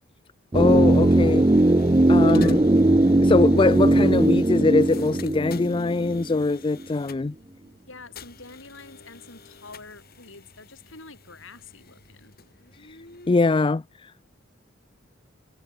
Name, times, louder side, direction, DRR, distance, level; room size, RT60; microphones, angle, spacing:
sound 1, 0.5-13.6, left 5 dB, 50° left, 7.7 m, -48 dB
voice 1, 0.5-1.5 2.1-2.6 3.2-7.3 13.3-14.1, left 3 dB, 25° left, 0.4 m, -22 dB
sound 2, 0.5-6.5 6.8-6.9, right 1 dB, 20° right, 0.6 m, -19 dB
voice 2, 7.9-12.4, left 3 dB, 80° left, 7.6 m, -46 dB
head